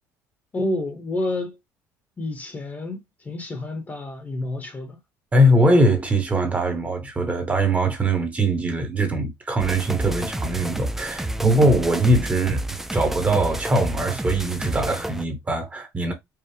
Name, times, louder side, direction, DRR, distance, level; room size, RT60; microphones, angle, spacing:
voice 1, 0.5-1.6 2.2-3.0 3.2-5.0, left 1 dB, 25° left, 1.1 m, -29 dB
voice 2, 5.3-12.6 12.9-16.1, right 1 dB, 20° right, 1.2 m, -21 dB
sound 1, 9.6-15.2, right 1 dB, 5° right, 0.4 m, -30 dB
4.7 x 2.3 x 3.3 m
cardioid pair, 110°, 7 cm